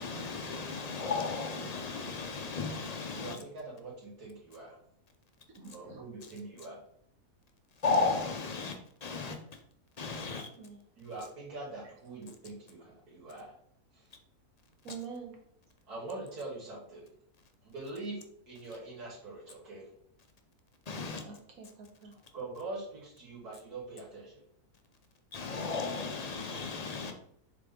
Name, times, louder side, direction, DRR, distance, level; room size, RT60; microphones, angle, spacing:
voice 1, 0.0-3.4 7.8-8.8 9.0-9.4 10.0-10.5 20.9-21.2 25.3-27.1, left 4 dB, 40° left, 0.6 m, -34 dB
voice 2, 3.1-4.8 5.7-6.8 11.0-13.5 13.9-14.1 15.9-17.1 17.6-19.9 22.3-24.4, right 2 dB, 85° right, 2.5 m, -43 dB
voice 3, 5.5-6.0 10.5-10.8 14.8-15.4 21.2-22.2, right 6 dB, 70° right, 1.6 m, -46 dB
7.4 x 3.6 x 3.7 m
omnidirectional pair, 1.6 m